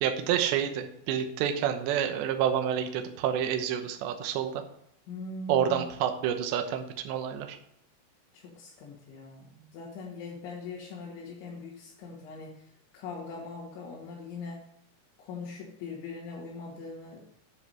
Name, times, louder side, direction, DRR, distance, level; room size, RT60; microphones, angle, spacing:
voice 1, 0.0-4.6 5.5-7.6, right 9 dB, 75° right, 6 dB, 2.8 m, -28 dB
voice 2, 5.1-5.9 8.3-14.6 15.2-17.3, left 4 dB, 70° left, -6 dB, 4.1 m, -41 dB
10.0 x 5.9 x 6.0 m, 0.74 s
omnidirectional pair, 5.9 m